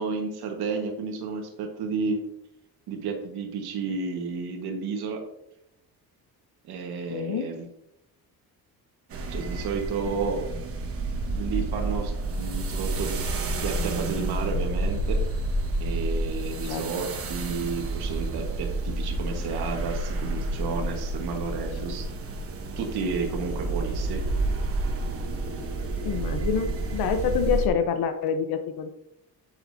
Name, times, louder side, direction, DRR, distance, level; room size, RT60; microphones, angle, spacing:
voice 1, 0.0-2.2 2.9-5.2 6.6-7.7 9.3-10.4 11.3-15.2 15.8-22.1 22.8-24.2, right 4 dB, 80° right, 2 dB, 1.5 m, -32 dB
voice 2, 7.1-7.5 16.6-16.8 26.0-28.9, left 6 dB, 70° left, 8 dB, 0.9 m, -27 dB
sound 1, 9.1-27.7, right 2 dB, 35° right, 1.1 m, -30 dB
9.9 x 7.2 x 2.7 m, 0.83 s
cardioid pair, 170°, 38 cm